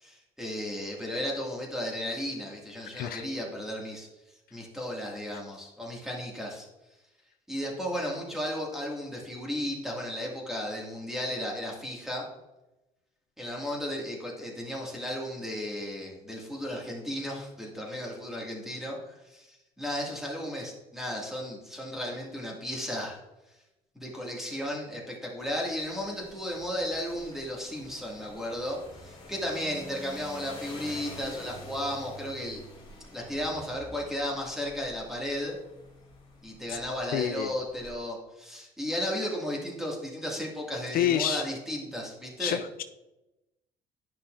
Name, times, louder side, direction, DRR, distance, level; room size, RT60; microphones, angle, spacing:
voice 1, 0.0-4.1 4.5-6.7 7.5-12.3 13.4-23.2 24.0-32.6 33.1-35.6 36.4-42.6, equal, ahead, -2 dB, 2.0 m, -34 dB
sound 1, 25.4-37.9, left 1 dB, 30° left, 2.0 m, -48 dB
voice 2, 37.1-37.5 40.9-41.4 42.4-42.8, left 11 dB, 60° left, 10 dB, 0.4 m, -28 dB
10.5 x 5.6 x 2.5 m, 0.98 s
cardioid pair, 110°, 17 cm